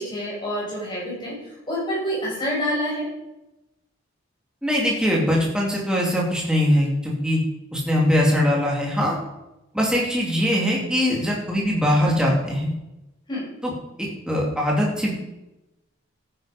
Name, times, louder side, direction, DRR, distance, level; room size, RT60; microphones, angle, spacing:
voice 1, 0.0-1.3 1.7-3.0 13.3-13.4, equal, 20° left, -4 dB, 6.0 m, -27 dB
voice 2, 4.6-7.4 7.7-9.2 9.7-12.7 13.6-13.7 14.0-15.1, equal, 5° right, -3 dB, 3.0 m, -21 dB
13.0 x 9.8 x 5.3 m, 0.94 s
head